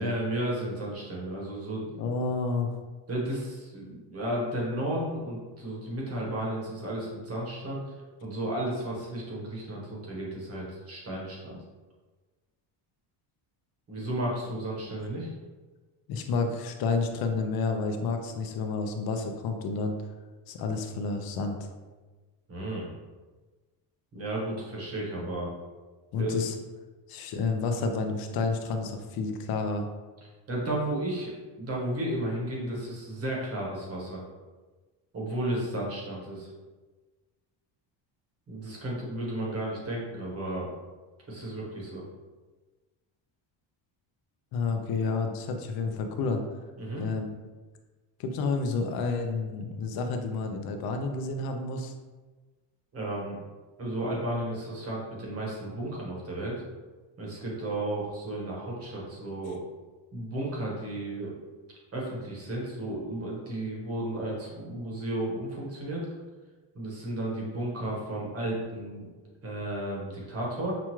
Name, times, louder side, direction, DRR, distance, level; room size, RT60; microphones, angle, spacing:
voice 1, 0.0-1.9 3.1-7.8 8.2-11.6 13.9-15.3 22.5-22.9 24.1-25.5 26.1-26.3 30.5-31.3 31.6-34.2 35.1-36.5 38.5-40.7 41.3-42.0 46.8-47.0 52.9-53.4 53.8-56.6 57.2-59.6 60.1-61.4 61.9-66.1 66.7-69.1 69.4-70.7, right 1 dB, 30° right, -3 dB, 1.0 m, -33 dB
voice 2, 2.0-2.7 16.1-20.0 20.5-21.7 26.1-26.5 27.1-29.9 44.5-46.4 47.0-47.4 48.2-51.9, left 4 dB, 50° left, 5 dB, 0.5 m, -30 dB
6.0 x 2.3 x 2.9 m, 1.3 s
cardioid pair, 175°, 46 cm